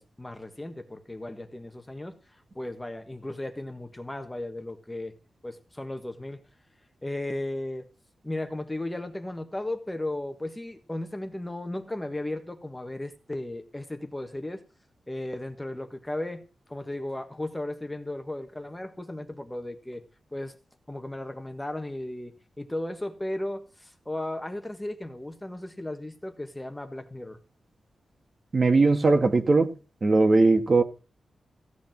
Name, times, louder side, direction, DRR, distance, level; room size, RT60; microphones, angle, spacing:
voice 1, 0.0-2.2 2.5-5.1 5.4-6.4 7.0-7.9 8.2-14.6 15.1-16.4 16.7-20.0 20.3-20.6 20.9-27.4, left 1 dB, 10° left, 1.4 m, -35 dB
voice 2, 28.5-29.8 30.0-30.8, right 3 dB, 40° right, 1.8 m, -20 dB
16.0 x 5.3 x 9.1 m
wide cardioid pair, 125°, 0 cm